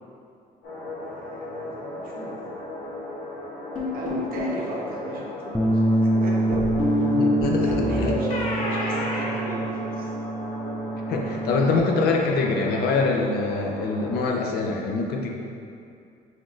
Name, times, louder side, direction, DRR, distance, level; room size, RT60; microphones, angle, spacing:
sound 1, 0.6-14.2, left 1 dB, 90° left, 1.3 m, -36 dB
voice 1, 1.0-2.4 3.9-6.6 7.5-10.1, right 2 dB, 60° right, -3 dB, 1.0 m, -36 dB
sound 2, 3.8-4.6 6.5-10.2, left 2 dB, 45° left, 1.2 m, -27 dB
Bass guitar, 5.5-11.8, right 1 dB, 5° left, 0.3 m, -26 dB
voice 2, 7.1-7.7 8.0-8.1 11.1-15.3, left 3 dB, 70° left, 0 dB, 0.6 m, -24 dB
6.0 x 2.6 x 3.1 m, 2.5 s
cardioid pair, 110°, 17 cm